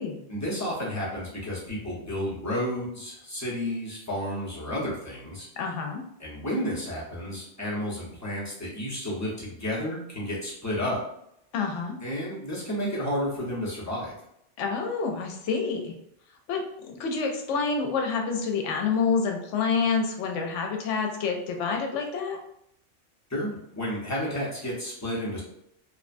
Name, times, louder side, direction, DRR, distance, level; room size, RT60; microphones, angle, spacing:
voice 1, 0.3-5.5 6.2-11.0 12.0-14.1 23.3-25.4, equal, 15° left, -6 dB, 0.7 m, -31 dB
voice 2, 5.6-6.0 11.5-12.0 14.6-15.9 16.5-22.4, left 5 dB, 80° left, 3 dB, 0.9 m, -28 dB
2.9 x 2.1 x 2.5 m, 0.76 s
omnidirectional pair, 1.2 m